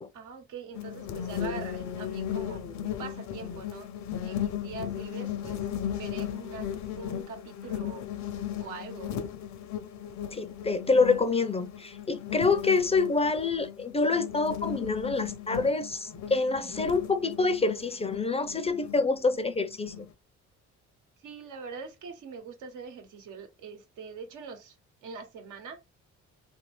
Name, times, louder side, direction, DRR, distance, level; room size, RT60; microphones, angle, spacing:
voice 1, 0.1-3.9 4.2-5.7 6.0-8.1 8.6-9.1 21.2-24.7 25.0-25.8, right 5 dB, 90° right, 1.1 m, -43 dB
sound 1, 0.7-20.1, left 9 dB, 65° left, 0.6 m, -36 dB
voice 2, 10.3-20.1, left 3 dB, 20° left, 0.4 m, -27 dB
2.7 x 2.7 x 3.2 m
cardioid pair, 90°, 30 cm